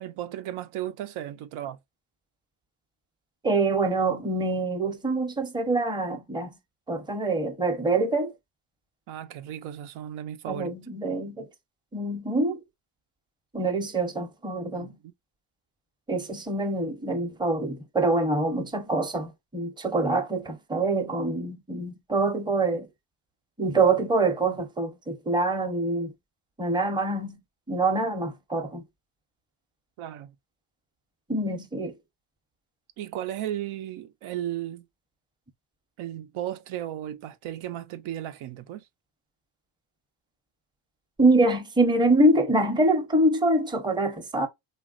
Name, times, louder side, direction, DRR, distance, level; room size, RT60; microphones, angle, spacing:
voice 1, 0.0-1.8 9.1-10.7 14.7-15.1 30.0-30.3 33.0-34.9 36.0-38.9, right 12 dB, 85° right, 0.6 m, -35 dB
voice 2, 3.4-6.5 6.9-8.3 10.5-11.5 11.9-12.6 13.5-15.0 16.1-22.9 23.6-26.1 26.6-27.4 27.7-28.8 31.3-32.0 41.2-44.5, right 2 dB, 10° right, 0.6 m, -25 dB
3.1 x 2.3 x 2.3 m
cardioid pair, 95°, 48 cm